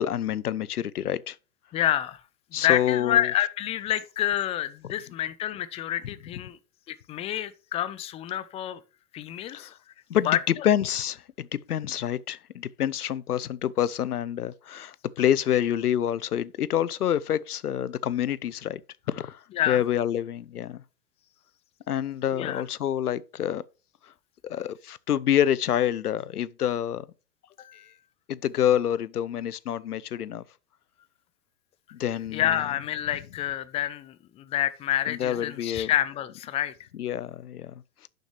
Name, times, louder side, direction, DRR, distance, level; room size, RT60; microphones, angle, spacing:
voice 1, 0.0-1.4 2.5-3.3 9.5-9.8 10.1-10.4 10.6-18.8 19.1-19.4 19.7-20.8 21.9-23.6 24.5-27.1 27.6-27.9 28.3-30.4 31.9-32.6 35.1-35.9 37.0-37.8, left 10 dB, 75° left, 0.7 m, -27 dB
voice 2, 1.7-2.2 2.6-6.6 6.9-8.8 9.1-9.7 10.2-10.7 19.5-19.8 22.3-22.6 32.3-36.7, left 12 dB, 15° left, 0.5 m, -28 dB
11.0 x 6.5 x 3.2 m
figure-of-eight pair, 100°, 45 cm